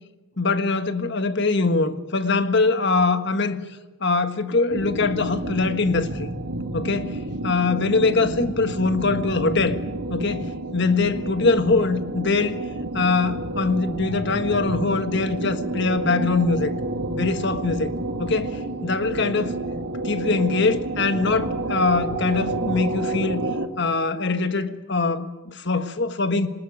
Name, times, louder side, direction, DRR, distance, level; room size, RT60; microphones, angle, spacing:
voice 1, 0.4-3.6 4.0-6.3 6.7-7.2 7.4-9.8 10.1-12.5 12.9-16.7 17.1-17.9 18.2-19.6 20.0-23.4 23.8-26.5, left 3 dB, 50° left, 1.5 m, -23 dB
sound 1, 4.7-23.7, right 2 dB, 85° right, 2.3 m, -30 dB
24.0 x 20.0 x 9.3 m
head